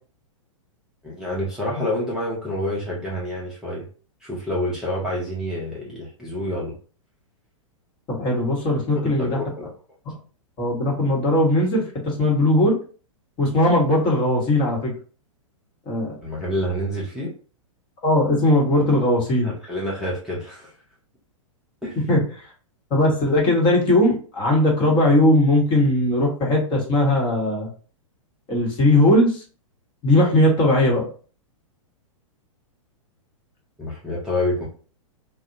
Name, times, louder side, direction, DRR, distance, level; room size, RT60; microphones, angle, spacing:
voice 1, 1.0-3.9 4.2-6.8 9.0-9.7 16.2-17.3 19.4-20.7 21.8-22.0 33.8-34.7, left 1 dB, 5° right, -6 dB, 0.6 m, -28 dB
voice 2, 8.2-9.4 10.6-12.7 13.4-14.9 15.9-16.2 18.0-19.5 22.1-22.2 22.9-27.7 28.5-29.4 30.0-31.1, left 1 dB, 30° left, -2 dB, 1.0 m, -19 dB
2.6 x 2.1 x 2.6 m, 0.39 s
hypercardioid pair, 110°, 17 cm